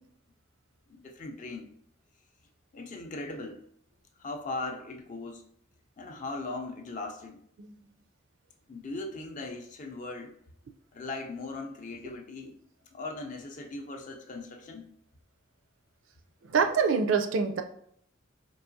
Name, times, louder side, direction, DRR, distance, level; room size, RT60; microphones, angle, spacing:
voice 1, 0.9-1.7 2.7-3.7 4.2-5.4 6.0-7.4 8.7-10.4 10.9-12.6 12.9-14.9, left 2 dB, 40° left, 4 dB, 0.4 m, -39 dB
voice 2, 16.5-17.6, right 5 dB, 70° right, 6 dB, 0.4 m, -25 dB
4.6 x 2.8 x 2.6 m, 0.66 s
head